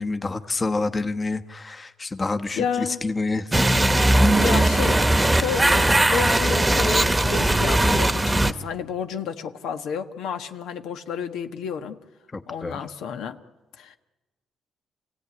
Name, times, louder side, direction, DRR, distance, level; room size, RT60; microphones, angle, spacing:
voice 1, 0.0-3.5 12.3-12.8, left 3 dB, 25° left, 8 dB, 1.2 m, -28 dB
voice 2, 2.5-3.0 4.4-12.0 12.5-13.4 13.8-14.0, left 7 dB, 85° left, 7 dB, 1.3 m, -31 dB
sound 1, 3.5-8.5, right 1 dB, 15° right, 1.1 m, -19 dB
28.0 x 16.5 x 9.7 m, 1.2 s
cardioid pair, 90°, 0 cm